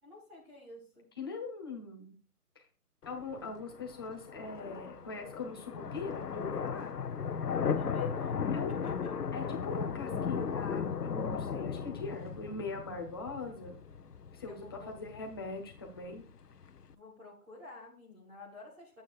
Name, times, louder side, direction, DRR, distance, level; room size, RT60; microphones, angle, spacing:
voice 1, 0.0-1.0 7.7-8.4 8.8-9.1 14.5-14.9 16.9-19.0, left 2 dB, 5° right, -6 dB, 1.9 m, -51 dB
voice 2, 1.2-2.1 2.5-2.7 3.0-6.9 8.0-8.1 8.5-9.0 9.3-13.8 14.3-16.2, left 3 dB, 15° left, 1 dB, 1.1 m, -41 dB
sound 1, 3.0-16.9, left 6 dB, 90° left, 1.0 m, -37 dB
11.0 x 8.7 x 2.4 m, 0.36 s
hypercardioid pair, 170°, 45 cm